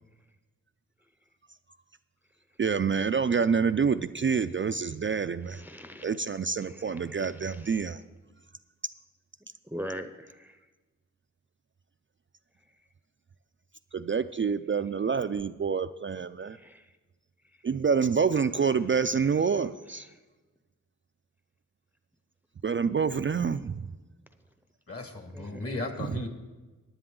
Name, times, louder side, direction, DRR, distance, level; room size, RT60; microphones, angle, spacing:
voice 1, 2.6-5.6 6.0-8.0 13.9-16.6 17.6-20.1 22.6-23.9 26.0-26.2, right 6 dB, 35° right, 9 dB, 0.4 m, -27 dB
voice 2, 5.4-6.1 6.6-7.8 9.6-10.6 16.4-16.9 20.1-20.2 25.3-25.8, equal, 5° right, 9 dB, 0.7 m, -42 dB
voice 3, 24.9-26.3, left 2 dB, 45° left, 5 dB, 1.9 m, -35 dB
15.0 x 10.0 x 3.8 m, 1.2 s
cardioid pair, 50°, 34 cm